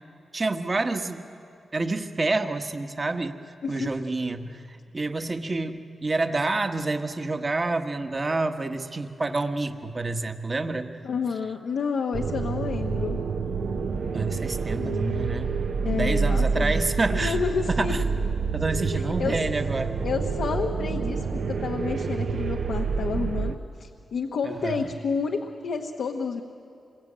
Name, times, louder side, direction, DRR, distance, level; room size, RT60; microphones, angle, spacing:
voice 1, 0.3-1.2 1.7-3.4 3.7-4.6 4.9-10.9 14.1-15.5 15.9-17.4 17.7-18.0 18.5-20.0 24.4-24.9, right 3 dB, 35° right, 7 dB, 1.4 m, -28 dB
voice 2, 3.6-3.9 11.0-13.2 14.7-15.3 15.8-16.7 17.1-18.1 18.9-19.4 20.0-26.4, left 5 dB, 85° left, 2 dB, 1.2 m, -30 dB
sound 1, 12.1-23.5, right 5 dB, 75° right, 1.0 m, -28 dB
27.0 x 22.5 x 8.8 m, 2.7 s
cardioid pair, 80°, 0 cm